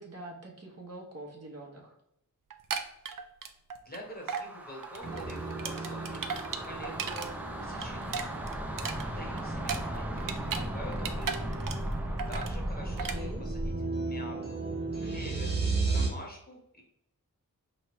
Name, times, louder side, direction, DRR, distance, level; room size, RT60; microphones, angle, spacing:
voice 1, 0.0-1.9 12.8-13.5, right 1 dB, 45° right, -1 dB, 1.0 m, -45 dB
sound 1, 2.5-4.0 4.3-4.5 4.8-7.3 7.6-10.7 10.9-11.9 12.2-12.6 13.0-13.2, right 6 dB, 70° right, 0.5 m, -36 dB
voice 2, 3.8-7.3 7.6-8.4 8.8-11.7 12.3-14.6 15.0-15.6 15.9-16.8, equal, 25° left, 0 dB, 1.2 m, -46 dB
sound 2, 4.1-13.8, right 1 dB, 5° right, 0.6 m, -37 dB
sound 3, 5.0-16.1, right 3 dB, 30° right, 1.4 m, -36 dB
4.6 x 3.1 x 3.1 m, 0.76 s
wide cardioid pair, 90°, 35 cm